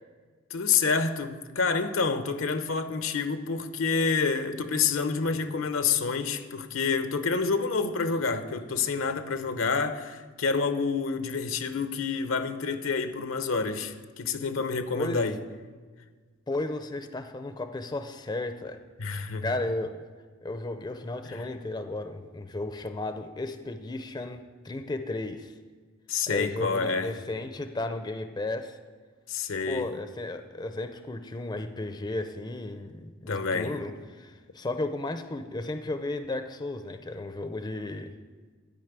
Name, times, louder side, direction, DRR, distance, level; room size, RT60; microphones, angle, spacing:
voice 1, 0.5-15.4 19.0-19.6 21.2-21.5 26.1-27.2 29.3-30.0 33.3-33.8, left 5 dB, 80° left, 0.8 m, -28 dB
voice 2, 14.9-15.2 16.5-18.8 19.4-20.1 20.4-25.5 26.3-28.8 29.7-33.9 34.2-38.1, left 2 dB, 20° left, 0.5 m, -34 dB
12.5 x 5.3 x 8.1 m
head